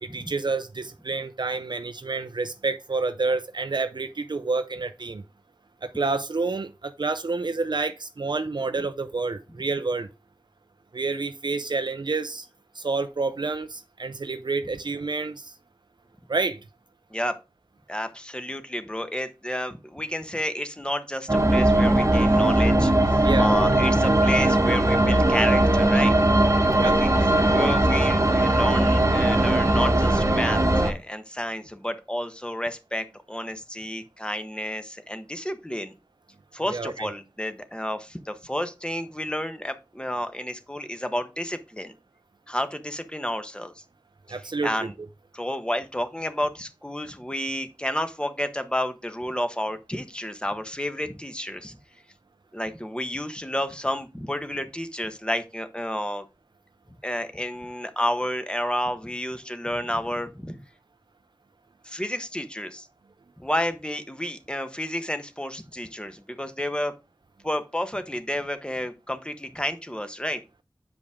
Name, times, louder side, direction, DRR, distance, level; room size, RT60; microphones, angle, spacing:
voice 1, 0.0-5.2 5.8-10.1 10.9-12.5 12.7-15.5 16.3-16.6 23.2-23.5 26.7-26.9 36.7-37.1 44.3-44.9, right 3 dB, 70° right, 0.5 m, -28 dB
voice 2, 17.9-26.1 26.8-35.9 36.5-41.9 42.5-43.8 44.3-44.9 45.3-51.8 52.5-56.2 57.0-60.6 61.8-62.9 63.4-66.9 67.4-70.4, left 1 dB, 10° left, 1.1 m, -31 dB
sound 1, 21.3-30.9, right 1 dB, 35° right, 1.2 m, -19 dB
8.2 x 5.1 x 3.6 m
wide cardioid pair, 45°, 8 cm